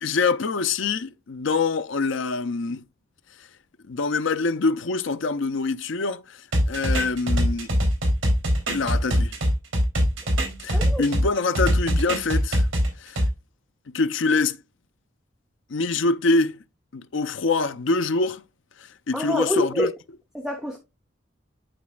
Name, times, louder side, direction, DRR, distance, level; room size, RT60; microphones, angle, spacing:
voice 1, 0.0-2.8 3.9-6.4 6.7-7.7 8.7-9.3 10.6-12.7 13.0-13.2 13.9-14.6 15.7-16.6 16.9-18.4 19.1-19.9, left 3 dB, 65° left, 0.6 m, -25 dB
sound 1, 6.5-11.2 11.5-13.3, equal, 75° right, 3.0 m, -22 dB
voice 2, 10.7-11.0 19.1-19.9 20.3-20.8, left 1 dB, 5° right, 1.0 m, -26 dB
11.5 x 4.1 x 2.4 m
head